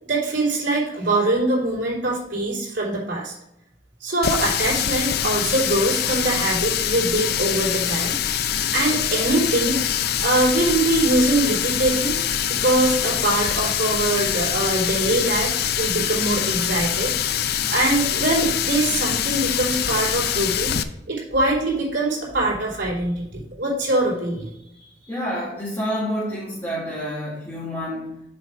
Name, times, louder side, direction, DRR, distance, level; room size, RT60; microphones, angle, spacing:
voice 1, 0.0-3.3 4.0-8.4 8.7-9.8 10.2-12.1 12.5-17.3 17.7-20.7 21.1-25.1, right 2 dB, 85° right, -5 dB, 3.2 m, -23 dB
Water tap faucet, 4.2-20.8, left 9 dB, 60° left, 0.4 m, -24 dB
voice 2, 25.1-28.2, equal, 15° left, -9 dB, 1.9 m, -28 dB
7.0 x 4.8 x 5.0 m, 0.81 s
head